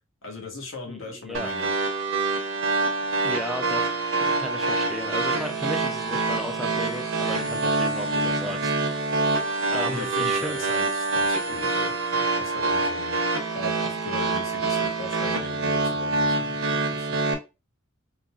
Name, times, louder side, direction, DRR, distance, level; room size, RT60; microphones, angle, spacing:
voice 1, 0.2-1.7 7.4-7.6 9.8-13.2 13.5-17.3, left 2 dB, 70° left, 1 dB, 1.2 m, -38 dB
voice 2, 0.9-1.5 3.2-8.7 9.7-10.6, left 1 dB, ahead, 5 dB, 0.4 m, -35 dB
sound 1, 1.3-17.3, right 3 dB, 70° right, 0.8 m, -26 dB
sound 2, 4.6-12.3, equal, 55° left, 1.3 m, -43 dB
3.8 x 2.8 x 2.3 m, 0.27 s
head